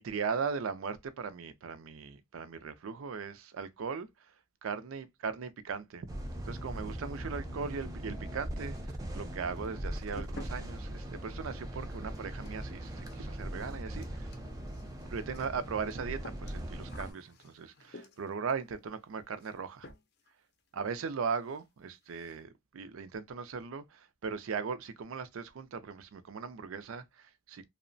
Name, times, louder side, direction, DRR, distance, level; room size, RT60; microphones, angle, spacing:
voice 1, 0.0-4.3 4.6-6.1 6.4-14.3 15.1-19.9 20.7-27.6, right 5 dB, 80° right, 0.4 m, -38 dB
sound 1, 6.1-17.1, right 1 dB, 15° right, 0.4 m, -40 dB
sound 2, 8.7-9.3 9.6-18.5 19.4-19.6 19.8-20.3 20.6-20.7 21.1-21.2 21.4-21.6 21.9-22.4, left 2 dB, 50° left, 0.5 m, -53 dB
2.8 x 2.0 x 2.5 m
head